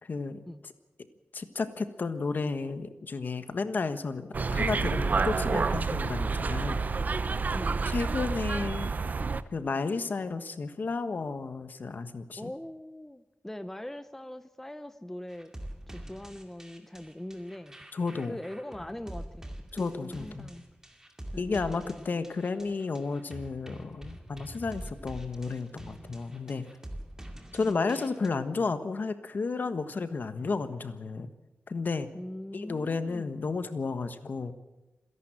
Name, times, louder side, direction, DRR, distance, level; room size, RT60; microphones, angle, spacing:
voice 1, 0.0-0.4 1.3-6.8 7.9-8.9 9.5-12.5 17.9-18.4 19.7-20.5 21.4-26.7 27.5-31.3 31.7-32.1 32.5-34.5, left 4 dB, 50° left, 10 dB, 1.3 m, -32 dB
sound 1, 4.3-9.4, right 4 dB, 45° right, 0.7 m, -29 dB
voice 2, 7.5-7.9 12.4-15.5 15.9-17.9 18.2-20.6 21.3-22.1 27.6-28.3 32.1-33.5, left 1 dB, 10° left, 11 dB, 0.6 m, -42 dB
sound 2, 15.3-28.3, right 1 dB, 15° right, 2.3 m, -45 dB
27.5 x 11.0 x 8.9 m, 1.1 s
wide cardioid pair, 150°, 4 cm